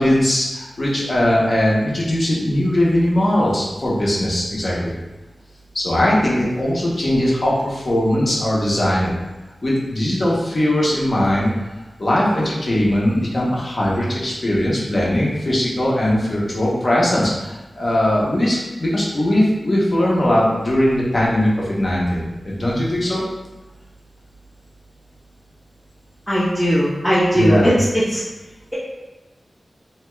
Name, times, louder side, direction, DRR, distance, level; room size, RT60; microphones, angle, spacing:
voice 1, 0.0-4.9 5.7-9.1 9.6-11.5 12.0-23.2 27.3-27.7, left 1 dB, 45° left, -5 dB, 0.8 m, -19 dB
voice 2, 26.3-28.2, equal, 5° left, -9 dB, 0.6 m, -18 dB
2.7 x 2.2 x 3.0 m, 1.1 s
wide cardioid pair, 100°, 0 cm